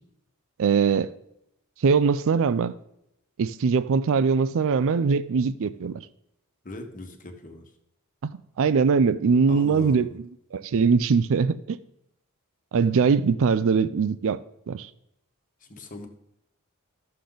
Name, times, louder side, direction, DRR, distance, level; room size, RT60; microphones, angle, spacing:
voice 1, 0.6-1.1 1.8-2.7 3.4-5.9 8.2-8.3 8.6-10.1 10.5-11.8 12.7-14.4 14.7-14.9, right 5 dB, 65° right, 0.4 m, -21 dB
voice 2, 6.6-7.7 9.5-10.2 15.6-16.1, left 1 dB, 35° left, 1.3 m, -40 dB
13.0 x 6.7 x 3.9 m
head